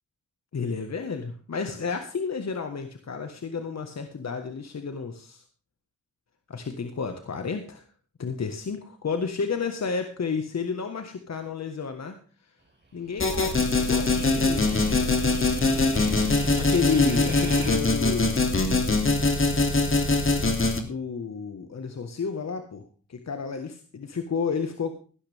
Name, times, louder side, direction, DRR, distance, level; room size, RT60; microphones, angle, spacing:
voice 1, 0.5-5.4 6.5-7.8 8.2-12.1 12.9-14.7 16.6-18.4 20.8-22.8 23.1-24.9, left 5 dB, 60° left, 7 dB, 1.6 m, -31 dB
sound 1, 13.1-17.8, right 2 dB, 35° right, 4.2 m, -39 dB
sound 2, 13.2-20.8, left 3 dB, 40° left, 2.8 m, -23 dB
16.5 x 12.0 x 3.6 m, 0.39 s
cardioid pair, 50°, 30 cm